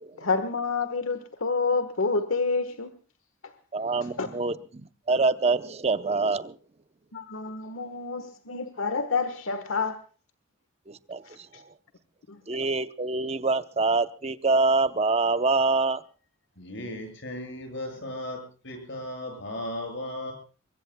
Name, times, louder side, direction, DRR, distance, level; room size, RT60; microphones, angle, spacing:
voice 1, 0.2-2.9 3.4-3.5 4.2-4.3 7.1-10.0 11.5-11.6 12.3-12.4, left 4 dB, 85° left, 1.3 m, -28 dB
voice 2, 3.7-6.6 10.9-11.7 12.5-16.0, right 3 dB, 30° right, 0.7 m, -26 dB
voice 3, 16.6-20.3, left 1 dB, 60° left, 7.6 m, -36 dB
24.0 x 23.0 x 2.2 m
head